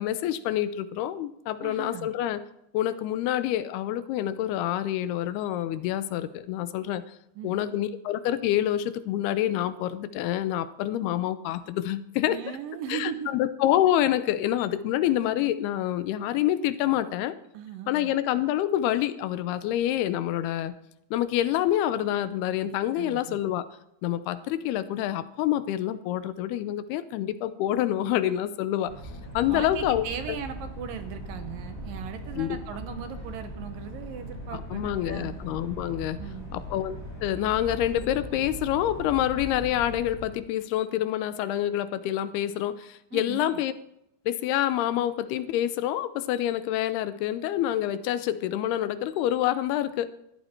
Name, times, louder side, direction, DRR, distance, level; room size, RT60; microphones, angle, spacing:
voice 1, 0.0-2.4 2.7-7.0 7.4-12.4 12.9-17.4 17.9-20.7 21.1-23.7 24.0-28.9 29.3-30.1 32.4-32.6 34.7-36.2 36.5-43.7 44.3-50.1, left 12 dB, 80° left, 13 dB, 2.8 m, -27 dB
voice 2, 1.6-2.1 7.4-7.8 12.3-13.3 17.5-18.1 22.6-23.4 29.5-35.4 36.2-36.5 43.1-43.6, right 9 dB, 70° right, 8 dB, 2.6 m, -38 dB
sound 1, 28.9-40.3, equal, 5° left, 6.5 m, -39 dB
20.5 x 14.0 x 4.4 m, 0.81 s
omnidirectional pair, 4.6 m